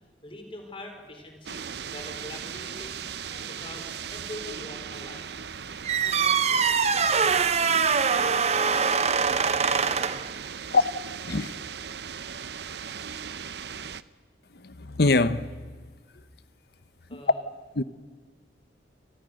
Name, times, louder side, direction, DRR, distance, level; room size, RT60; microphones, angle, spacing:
voice 1, 0.2-1.6 1.9-3.0 3.3-5.4 6.0-7.3 17.1-17.4, left 1 dB, 30° left, 5 dB, 4.2 m, -44 dB
sound 1, 1.5-14.0, right 7 dB, 60° right, 0.7 m, -38 dB
sound 2, 5.8-10.3, right 6 dB, 35° right, 0.9 m, -23 dB
voice 2, 14.5-15.5 17.8-17.9, left 3 dB, 55° left, 14 dB, 0.8 m, -23 dB
29.0 x 19.5 x 6.5 m, 1.4 s
head